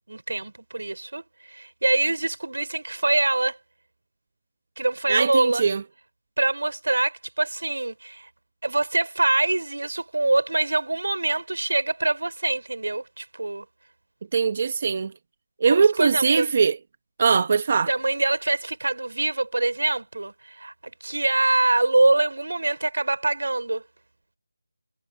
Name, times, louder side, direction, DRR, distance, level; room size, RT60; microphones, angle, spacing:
voice 1, 0.1-3.6 4.8-5.7 6.4-8.3 8.6-13.7 15.7-16.5 17.9-23.8, right 2 dB, 80° right, 5.5 m, -24 dB
voice 2, 5.1-5.8 14.3-15.1 15.6-16.8 17.2-17.9, right 5 dB, 25° right, 0.9 m, -21 dB
figure-of-eight pair, 175°, 0 cm